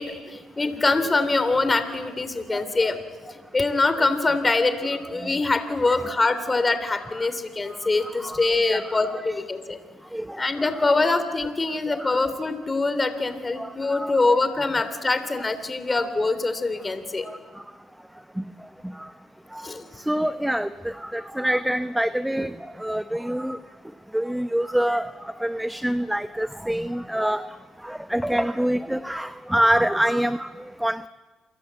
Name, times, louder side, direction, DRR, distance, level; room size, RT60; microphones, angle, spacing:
voice 1, 0.0-3.0 3.5-9.8 10.4-17.2 19.6-19.8, left 3 dB, 20° left, 10 dB, 3.3 m, -24 dB
voice 2, 5.8-6.1 7.2-7.3 7.7-9.0 10.1-11.0 11.9-12.3 13.6-14.4 15.9-16.1 17.2-17.4 18.4-18.5 18.8-19.1 19.5-19.7 20.0-23.6 24.1-27.5 27.8-31.1, right 1 dB, 5° right, 12 dB, 0.8 m, -27 dB
28.5 x 23.5 x 8.3 m, 1.3 s
cardioid pair, 90°, 0 cm